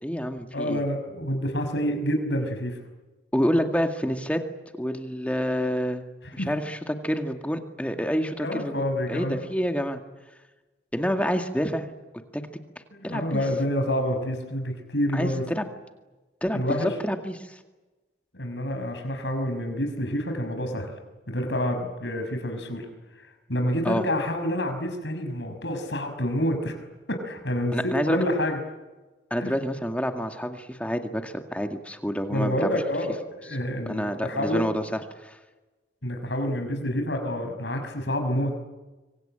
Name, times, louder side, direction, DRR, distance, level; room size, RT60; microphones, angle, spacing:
voice 1, 0.0-0.8 3.3-4.4 4.8-6.0 6.3-8.7 9.1-10.0 10.9-11.9 12.3-12.4 13.0-13.4 15.1-15.7 16.4-17.6 23.8-24.0 27.7-28.2 29.3-32.8 33.9-35.4, equal, 5° left, 5 dB, 2.0 m, -28 dB
voice 2, 0.5-2.8 6.4-6.5 8.4-9.4 12.9-15.4 16.5-16.9 18.3-20.9 21.3-22.9 23.5-26.8 27.1-28.6 29.4-29.6 32.3-34.7 36.0-38.5, equal, 75° left, 5 dB, 5.7 m, -28 dB
26.0 x 24.5 x 9.0 m, 1.2 s
head